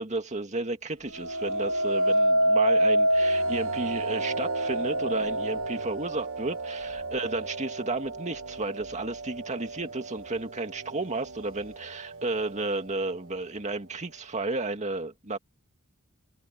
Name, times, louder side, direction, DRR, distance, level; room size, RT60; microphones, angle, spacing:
voice 1, 0.0-15.4, right 2 dB, 30° right, 2.2 m, -32 dB
sound 1, 1.1-10.3 10.8-11.3, right 1 dB, 60° right, 1.2 m, -27 dB
head